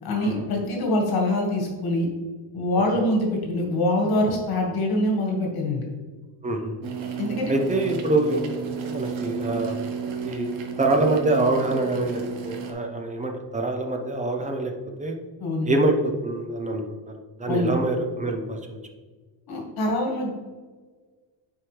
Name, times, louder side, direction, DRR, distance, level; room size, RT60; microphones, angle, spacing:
voice 1, 0.0-2.1 2.5-5.9 7.2-7.5 15.4-15.7 17.5-17.7 19.5-20.3, left 1 dB, 50° left, 0 dB, 1.7 m, -24 dB
voice 2, 6.4-6.7 7.5-9.7 10.2-14.7 15.0-15.2 15.6-17.1 17.4-18.8, right 2 dB, 15° right, 4 dB, 0.5 m, -25 dB
sound 1, 6.8-12.7, right 6 dB, 85° right, 1.1 m, -32 dB
9.4 x 4.6 x 3.2 m, 1.4 s
cardioid pair, 170°, 46 cm